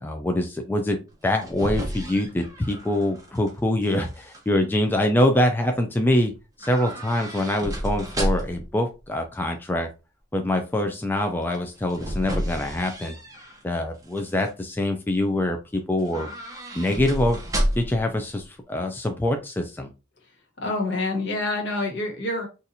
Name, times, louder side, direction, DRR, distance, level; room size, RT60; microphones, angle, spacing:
voice 1, 0.0-6.3 6.6-9.9 10.3-13.2 13.6-16.3 16.7-17.4 17.8-19.9, left 1 dB, 10° left, 4 dB, 0.3 m, -24 dB
sound 1, 1.1-3.5 3.8-4.4 6.6-8.7 11.5-13.6 14.0-14.5 16.0-18.1 18.3-18.4, equal, 20° right, 0.7 m, -31 dB
voice 2, 20.6-22.5, left 2 dB, 65° left, 0 dB, 1.3 m, -27 dB
4.1 x 2.4 x 2.6 m, 0.29 s
head